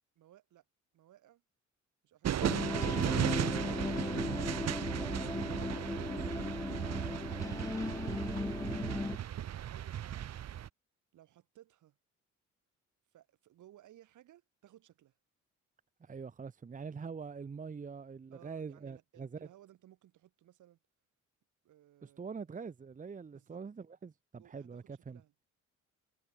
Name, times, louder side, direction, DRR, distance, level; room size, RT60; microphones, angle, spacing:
voice 1, 0.2-0.6 0.9-1.4 2.0-2.8 8.2-9.2 9.7-10.3 11.1-12.0 13.1-15.1 18.3-20.8 21.6-22.2 23.3-23.6 24.3-25.3, right 13 dB, 80° right, 6.0 m, -61 dB
sound 1, 2.2-10.7, right 11 dB, 60° right, 1.3 m, -36 dB
sound 2, 2.4-9.2, left 3 dB, 10° left, 0.5 m, -37 dB
voice 2, 16.0-19.4 22.0-25.2, right 5 dB, 25° right, 0.9 m, -44 dB
cardioid pair, 90°, 30 cm